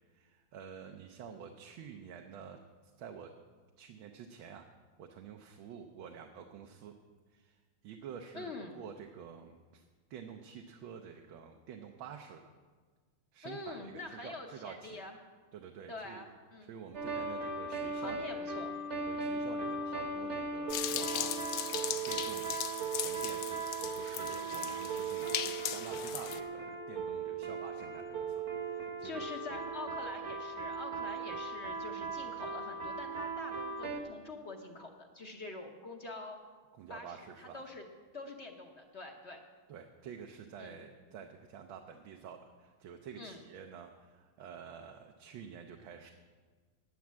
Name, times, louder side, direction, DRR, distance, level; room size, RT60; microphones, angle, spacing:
voice 1, 0.1-2.6 3.0-3.3 3.8-4.7 5.0-6.9 7.3-9.8 10.1-12.5 13.3-15.0 15.5-16.2 16.6-18.5 19.1-21.3 21.8-22.5 22.9-23.4 24.0-29.3 36.7-37.7 39.7-46.1, right 7 dB, 75° right, 4 dB, 1.5 m, -49 dB
voice 2, 8.3-8.8 13.4-15.2 15.9-16.8 17.9-18.7 29.0-36.4 36.9-37.8 38.1-39.4 40.6-40.8 43.2-43.4, left 3 dB, 45° left, 3 dB, 0.9 m, -45 dB
sound 1, 16.9-34.0, right 4 dB, 40° right, 1.1 m, -38 dB
sound 2, 20.7-26.4, left 10 dB, 70° left, 1.1 m, -38 dB
9.6 x 9.4 x 7.4 m, 1.5 s
omnidirectional pair, 2.3 m